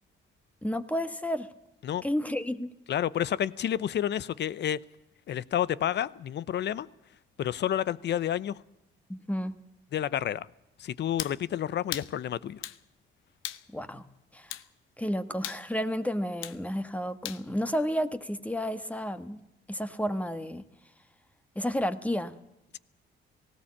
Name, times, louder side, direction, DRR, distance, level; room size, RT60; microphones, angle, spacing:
voice 1, 0.6-1.5 2.0-2.7 9.1-9.5 13.7-14.0 14.3-14.5 15.0-19.4 19.7-20.6 21.5-22.3, equal, 5° left, 11 dB, 1.4 m, -31 dB
voice 2, 2.9-4.8 5.3-6.9 7.4-8.6 9.9-10.5 10.8-12.6, left 10 dB, 60° left, 20 dB, 0.8 m, -30 dB
sound 1, 11.2-11.4 11.9-12.1 12.6-12.8 13.4-13.7 14.5-14.7 15.4-15.6 16.4-16.6 17.3-17.4, left 13 dB, 90° left, 0.9 m, -37 dB
18.5 x 16.5 x 8.7 m, 0.88 s
cardioid pair, 90°, 20 cm